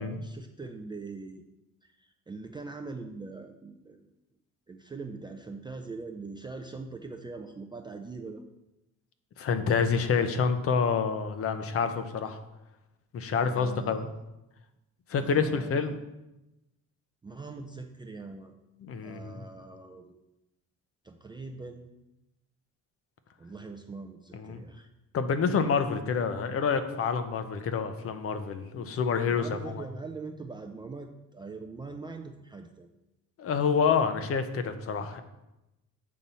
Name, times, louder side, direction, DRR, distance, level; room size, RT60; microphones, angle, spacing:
voice 1, 0.0-1.4 1.8-4.1 4.7-8.4 13.4-14.0 15.2-15.9 17.2-18.5 19.0-20.2 21.0-21.9 23.4-24.9 29.3-32.9, right 3 dB, 15° right, 3 dB, 0.3 m, -42 dB
voice 2, 9.4-12.4 13.1-14.1 15.1-15.9 18.8-19.4 24.5-24.6 25.1-29.8 33.4-35.2, left 6 dB, 45° left, 9 dB, 0.6 m, -28 dB
7.4 x 4.2 x 5.4 m, 0.95 s
cardioid pair, 155°, 33 cm